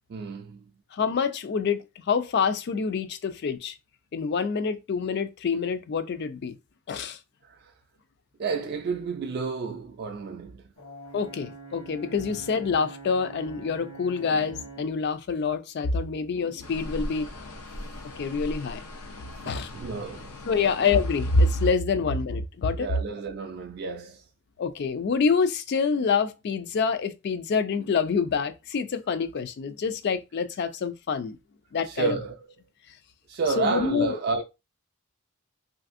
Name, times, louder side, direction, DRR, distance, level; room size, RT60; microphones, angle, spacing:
voice 1, 0.1-0.7 7.4-7.7 8.4-10.7 19.4-20.8 22.7-24.3 31.8-32.5 33.3-34.4, right 4 dB, 45° right, 0.3 m, -31 dB
voice 2, 0.9-3.7 4.1-6.6 6.9-7.2 11.1-17.3 18.2-18.8 19.5-19.7 20.5-22.9 24.6-31.4 31.7-32.2 33.6-34.2, left 5 dB, 50° left, 0.3 m, -26 dB
Brass instrument, 10.8-15.0, right 3 dB, 70° left, 1.1 m, -44 dB
sound 1, 16.6-21.7, left 1 dB, 85° left, 0.6 m, -40 dB
3.2 x 2.5 x 2.5 m
head